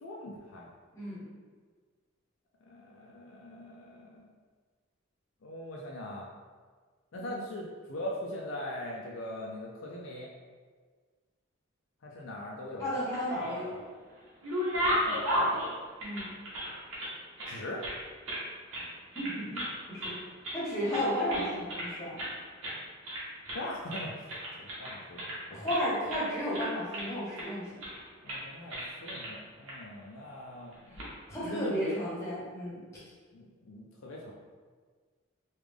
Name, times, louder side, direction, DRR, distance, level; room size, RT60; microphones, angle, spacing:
voice 1, 0.0-0.7 2.7-4.2 5.4-6.3 7.1-10.3 12.0-13.0 15.1-15.7 17.5-17.8 23.5-24.3 24.6-25.2 25.5-25.6 28.2-31.1 31.4-32.0 33.3-34.3, left 1 dB, 65° left, -2 dB, 0.4 m, -41 dB
voice 2, 7.1-7.4 12.8-13.8 16.0-16.3 19.1-20.2 20.5-22.2 25.5-27.7 30.9-32.8, equal, 15° left, -8 dB, 1.0 m, -33 dB
sound 1, 13.0-13.8 14.2-17.1 17.4-18.4 18.7-18.9 19.1-19.7 20.0-20.6 20.9-21.9 22.2-22.4 22.6-22.8 23.0-23.6 23.9-25.8 26.1-26.3 26.5-27.5 27.8-28.0 28.3-28.4 28.7-29.3 29.7-29.8 30.7-31.1, equal, 75° right, 1.0 m, -34 dB
3.3 x 2.4 x 3.5 m, 1.5 s
head